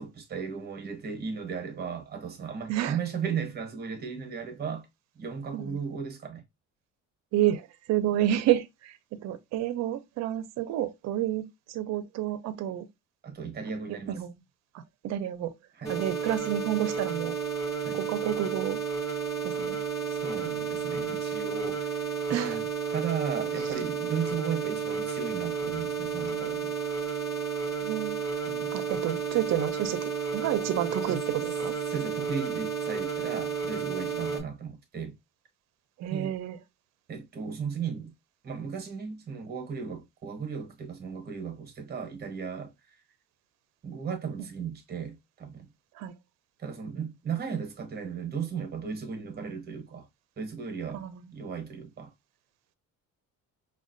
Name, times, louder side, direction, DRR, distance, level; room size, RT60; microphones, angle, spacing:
voice 1, 0.0-4.9 5.1-6.4 13.2-14.2 15.7-16.0 17.8-18.0 20.1-26.8 28.5-28.7 31.0-31.2 31.9-35.2 36.1-36.3 37.1-38.1 38.4-43.0 43.8-45.7 46.6-50.1 50.4-52.1, right 6 dB, 30° right, 0.9 m, -36 dB
voice 2, 7.3-12.9 14.1-14.4 14.7-15.5 15.9-17.4 18.1-18.8 19.4-19.8 22.3-22.6 27.8-28.2 28.7-31.7 36.0-36.6 46.0-46.1 50.9-51.3, right 12 dB, 55° right, 0.5 m, -30 dB
sound 1, 15.8-34.4, right 6 dB, 10° left, 0.8 m, -32 dB
5.0 x 2.2 x 2.5 m
cardioid pair, 160°, 32 cm